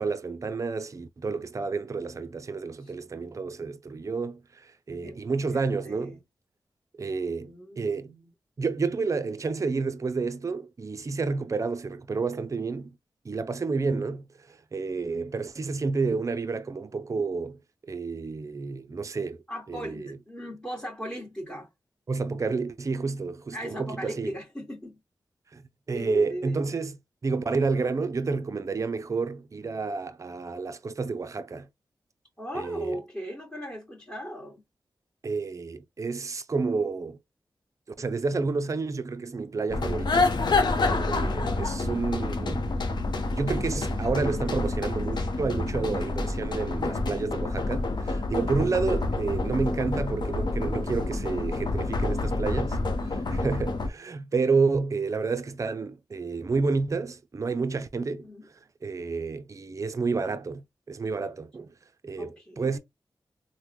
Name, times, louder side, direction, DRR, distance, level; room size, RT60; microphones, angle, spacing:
voice 1, 0.0-6.2 7.0-8.1 8.6-12.9 13.2-17.6 17.9-19.4 19.7-20.2 22.1-24.4 25.5-25.6 25.9-27.0 27.2-31.7 32.5-33.0 35.2-37.2 38.0-40.4 40.9-42.7 43.3-52.8 53.0-58.3 58.8-61.7 62.0-62.8, right 4 dB, 40° right, 0.4 m, -30 dB
voice 2, 5.5-6.2 7.4-8.3 19.5-21.7 23.5-25.0 25.9-26.6 32.4-34.6 57.9-58.5 62.2-62.8, equal, 15° left, 1.4 m, -38 dB
sound 1, 39.7-53.9, left 2 dB, 60° left, 0.7 m, -28 dB
3.4 x 2.1 x 2.9 m
cardioid pair, 50°, 8 cm